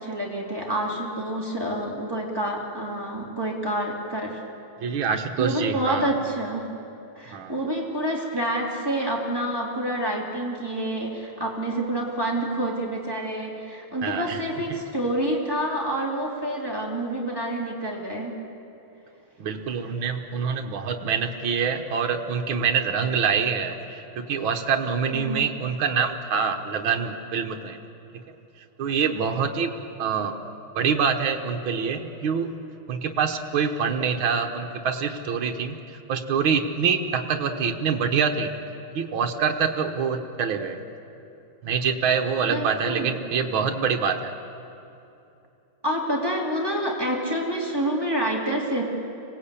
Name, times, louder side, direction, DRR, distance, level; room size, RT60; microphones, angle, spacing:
voice 1, 0.0-4.4 5.4-6.7 7.1-18.3 25.1-25.5 42.5-43.1 45.8-48.9, right 1 dB, 10° right, -2 dB, 3.0 m, -28 dB
voice 2, 4.8-6.1 7.3-7.6 14.0-14.4 14.7-14.8 19.4-27.8 28.8-29.7 30.0-30.4 30.8-32.5 32.9-38.5 38.9-40.8 41.6-44.3, right 6 dB, 75° right, 4 dB, 2.0 m, -25 dB
25.5 x 18.5 x 8.5 m, 2.8 s
omnidirectional pair, 2.3 m